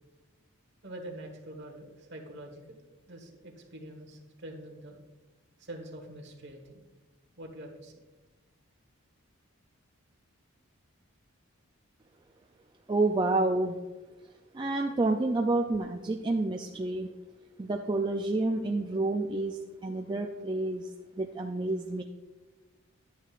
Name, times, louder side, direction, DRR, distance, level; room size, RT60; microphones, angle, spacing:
voice 1, 0.8-2.6 3.1-5.0 5.6-6.8 7.4-8.0, right 1 dB, 50° right, 2 dB, 1.5 m, -45 dB
voice 2, 12.9-13.8 14.5-17.1 17.6-22.0, right 2 dB, 20° right, 3 dB, 0.3 m, -29 dB
10.5 x 9.3 x 2.5 m, 1.2 s
head